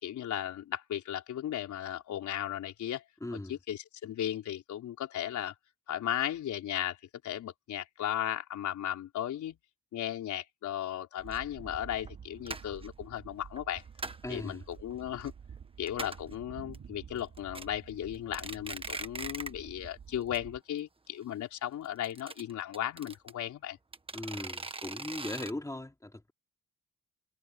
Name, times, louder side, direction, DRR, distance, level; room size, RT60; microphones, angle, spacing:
voice 1, 0.0-3.0 3.3-5.5 5.9-7.0 7.2-9.6 9.9-13.8 14.3-15.3 15.8-23.8, left 11 dB, 70° left, 4.2 m, -36 dB
voice 2, 3.2-3.5 14.2-14.6 24.1-26.3, left 1 dB, 10° left, 3.5 m, -39 dB
sound 1, 11.2-20.6, right 7 dB, 50° right, 4.8 m, -50 dB
sound 2, 11.3-11.4 11.9-12.1 12.5-12.9 13.6-14.3 14.7-15.3 15.6-15.7 15.9-16.3 16.7-16.8 17.2-17.7 18.1-19.6 19.9-20.0 20.3-20.4 20.7-20.8 21.8-23.3 23.9-25.5, right 3 dB, 20° right, 1.6 m, -40 dB
cardioid pair, 90°, 30 cm